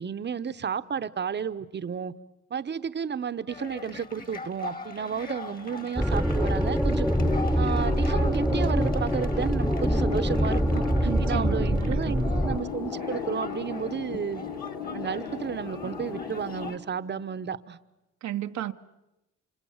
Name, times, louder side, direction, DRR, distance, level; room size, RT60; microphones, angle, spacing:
voice 1, 0.0-2.1 2.5-7.1 7.6-10.8 11.2-14.4 14.9-17.8, right 7 dB, 35° right, 1.0 m, -32 dB
sound 1, 3.5-16.8, left 3 dB, 30° left, 1.9 m, -42 dB
sound 2, 6.0-12.6, equal, ahead, 1.1 m, -25 dB
sound 3, 7.2-16.7, left 6 dB, 90° left, 3.0 m, -37 dB
voice 2, 11.0-12.2 18.2-18.7, right 12 dB, 65° right, 0.9 m, -33 dB
29.0 x 26.0 x 7.2 m
cardioid pair, 90°, 30 cm